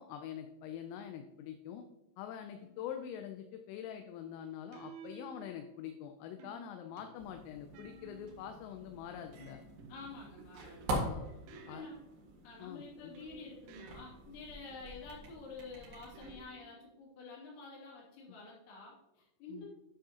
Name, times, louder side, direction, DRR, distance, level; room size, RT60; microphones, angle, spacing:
voice 1, 0.0-1.8 2.2-9.6 10.9-11.3 11.7-11.8 12.6-13.2 19.5-19.7, left 9 dB, 85° left, 6 dB, 3.2 m, -45 dB
sound 1, 2.6-3.0 4.7-6.0 6.4-8.6 9.4-12.4 13.2-14.4 16.1-17.0, right 5 dB, 80° right, 3.4 m, -55 dB
sound 2, 7.2-16.4, right 1 dB, 60° right, 3.4 m, -44 dB
voice 2, 9.9-11.0 11.5-12.0 12.4-19.7, left 3 dB, 65° left, -5 dB, 4.7 m, -49 dB
10.0 x 7.2 x 2.8 m, 0.93 s
omnidirectional pair, 5.9 m